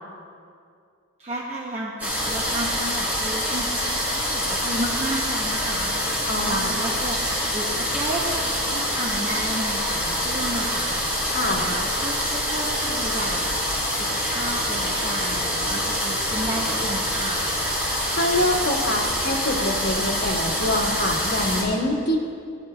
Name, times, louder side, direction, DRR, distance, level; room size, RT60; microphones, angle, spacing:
voice 1, 1.2-17.5, right 1 dB, 30° right, -3 dB, 0.8 m, -33 dB
sound 1, 2.0-21.6, equal, 5° right, 2.9 m, -25 dB
voice 2, 6.3-6.6 11.3-11.6 18.1-22.2, left 1 dB, 55° left, -5 dB, 2.0 m, -25 dB
16.5 x 12.0 x 2.3 m, 2.4 s
head